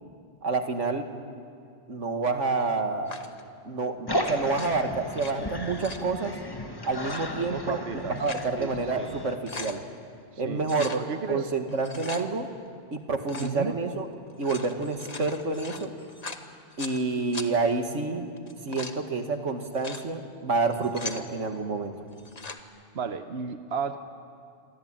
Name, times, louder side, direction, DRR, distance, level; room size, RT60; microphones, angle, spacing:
voice 1, 0.4-1.1 1.9-3.1 3.6-6.3 6.8-7.8 8.1-9.8 10.4-10.9 11.3-12.5 12.9-14.1 14.4-15.9 16.8-18.2 18.6-21.9, right 3 dB, 85° right, 6 dB, 2.3 m, -28 dB
sound 1, 3.1-3.4 4.4-5.3 5.6-6.1 6.9-7.2 7.9-8.5 8.9-9.0 9.3-9.8 10.6-11.0 11.7-12.2 13.2-13.6 14.3-17.0 17.3-17.5 18.4-19.0 19.6-20.0 20.6-21.2 22.1-22.6, left 3 dB, 35° left, 1.4 m, -40 dB
sound 2, 4.1-9.4, equal, 20° left, 1.7 m, -34 dB
voice 2, 7.5-8.2 8.5-9.1 10.3-11.5 11.9-12.1 13.3-13.9 22.9-24.0, right 6 dB, 60° right, 8 dB, 1.2 m, -33 dB
27.0 x 23.5 x 9.0 m, 2.3 s
omnidirectional pair, 1.2 m